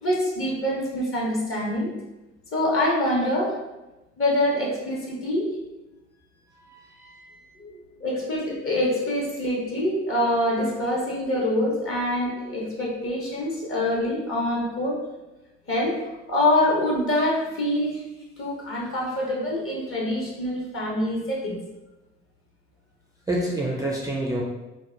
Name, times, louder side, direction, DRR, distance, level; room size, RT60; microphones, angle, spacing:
voice 1, 0.0-1.9 2.5-3.5 4.2-5.5 7.6-15.0 15.7-16.0 16.3-18.0 18.4-21.6, left 1 dB, 40° left, -3 dB, 1.0 m, -25 dB
voice 2, 6.5-7.5 23.3-24.4, right 1 dB, 10° right, -4 dB, 0.4 m, -29 dB
2.8 x 2.1 x 2.4 m, 1.1 s
hypercardioid pair, 45°, 33 cm